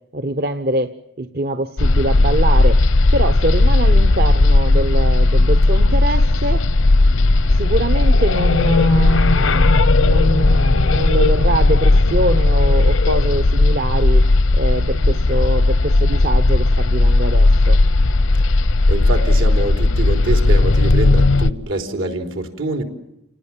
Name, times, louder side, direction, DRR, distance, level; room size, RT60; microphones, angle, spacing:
voice 1, 0.1-0.9 1.2-2.8 3.1-6.6 7.5-14.2 14.5-17.8, right 1 dB, 50° right, 0.9 m, -24 dB
sound 1, 1.8-21.5, left 2 dB, 80° left, 0.8 m, -15 dB
voice 2, 18.9-22.8, right 2 dB, 80° right, 4.0 m, -25 dB
29.5 x 19.0 x 7.4 m
head